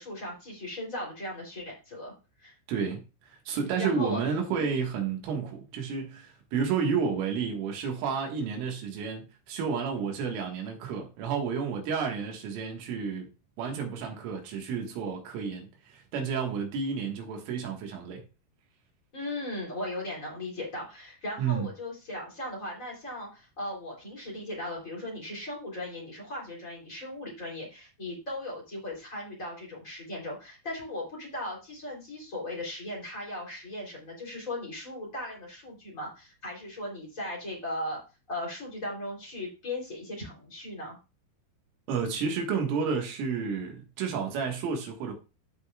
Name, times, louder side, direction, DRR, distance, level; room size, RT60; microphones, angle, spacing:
voice 1, 0.0-2.1 2.4-2.5 3.8-4.2 4.5-4.7 19.1-38.0 38.3-41.0, left 1 dB, 20° left, 2.5 m, -37 dB
voice 2, 2.7-13.3 13.6-18.3 21.4-21.7 41.9-45.2, right 6 dB, 75° right, 4.1 m, -31 dB
15.0 x 5.4 x 2.4 m
omnidirectional pair, 5.9 m